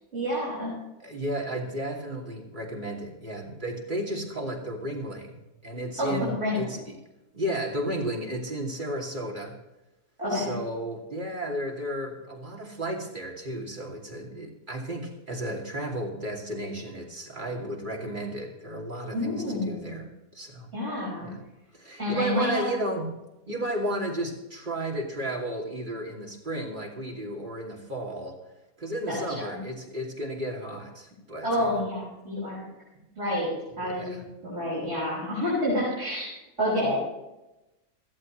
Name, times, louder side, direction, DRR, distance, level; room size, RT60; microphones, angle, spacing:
voice 1, 0.1-0.7 6.0-6.7 10.2-10.5 19.1-20.0 20.7-21.3 22.0-22.6 29.1-29.5 31.4-32.6 33.2-33.5 33.8-34.2 34.4-37.0, left 1 dB, 45° right, -8 dB, 6.3 m, -28 dB
voice 2, 1.0-7.0 7.3-9.6 10.3-20.1 20.3-20.7 21.2-21.4 21.7-23.1 23.5-28.4 28.8-31.8 32.9-33.0 33.7-34.3, right 1 dB, 30° right, 0 dB, 2.8 m, -33 dB
17.0 x 15.0 x 3.2 m, 0.96 s
omnidirectional pair, 1.6 m